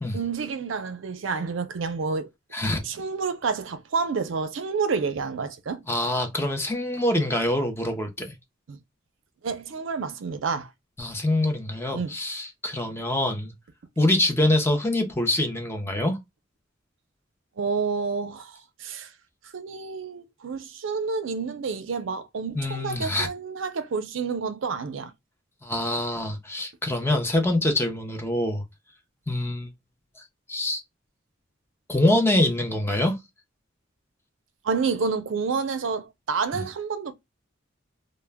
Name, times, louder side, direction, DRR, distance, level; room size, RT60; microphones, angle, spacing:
voice 1, 0.1-2.3 2.8-5.8 8.7-8.8 9.4-10.7 11.9-12.1 17.6-19.1 19.5-25.1 34.6-37.1, right 5 dB, 70° right, 0.5 m, -29 dB
voice 2, 2.5-2.8 5.9-8.3 11.0-13.5 14.0-16.2 22.5-23.3 25.6-28.6 29.3-29.7 30.5-30.8 31.9-33.2 36.5-36.6, left 1 dB, 10° left, 0.5 m, -25 dB
2.1 x 2.1 x 3.2 m
head